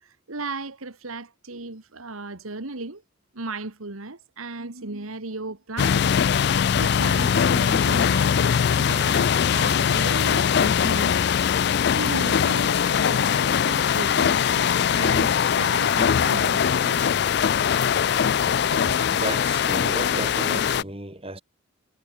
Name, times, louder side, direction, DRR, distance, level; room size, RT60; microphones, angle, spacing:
voice 1, 0.0-3.0 3.3-6.1 6.7-11.2 11.9-17.2 18.7-18.9, right 3 dB, 90° right, 2.0 m, -36 dB
sound 1, 5.8-20.8, left 8 dB, 50° left, 0.3 m, -21 dB
voice 2, 19.1-21.4, right 1 dB, 25° right, 4.5 m, -34 dB
head